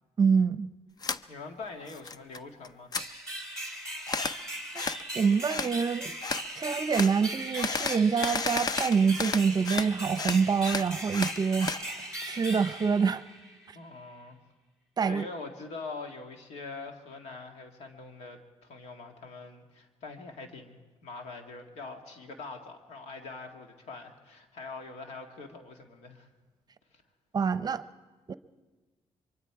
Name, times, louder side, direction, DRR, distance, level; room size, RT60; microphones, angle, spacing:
voice 1, 0.2-0.7 5.1-6.1 6.6-13.2 13.7-13.8 15.0-15.3 27.3-27.8 28.3-28.4, right 5 dB, 40° right, 0.7 m, -26 dB
sound 1, 1.0-1.2 1.6-2.4 2.6-3.0 4.1-4.4 4.7-5.0 5.5-5.7 6.2-6.4 6.9-7.1 7.5-9.9 10.1-11.8, left 4 dB, 35° left, 0.6 m, -32 dB
voice 2, 1.3-2.9 13.7-14.4 15.1-26.3 26.9-27.0, left 3 dB, 85° left, 2.0 m, -43 dB
sound 2, 2.9-13.6, right 1 dB, 5° left, 3.6 m, -39 dB
24.0 x 23.5 x 4.8 m
cardioid pair, 95°, 11 cm